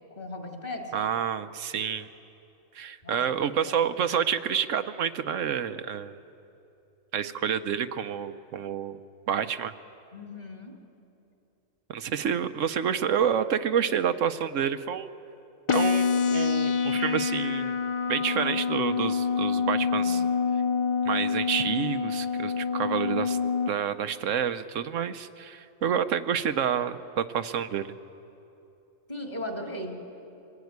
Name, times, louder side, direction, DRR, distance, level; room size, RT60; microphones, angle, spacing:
voice 1, 0.1-1.1 3.0-3.2 3.6-3.8 10.1-10.8 20.0-20.2 29.1-30.1, left 1 dB, 30° left, 1 dB, 2.8 m, -37 dB
voice 2, 0.9-2.1 2.7-6.2 7.1-9.0 9.3-9.7 11.9-15.1 15.7-17.7 18.1-20.2 21.0-23.4 23.7-27.9, right 8 dB, 70° right, 10 dB, 1.1 m, -28 dB
sound 1, 15.7-23.7, left 6 dB, 55° left, 0.3 m, -26 dB
24.5 x 16.5 x 9.4 m, 2.9 s
omnidirectional pair, 1.4 m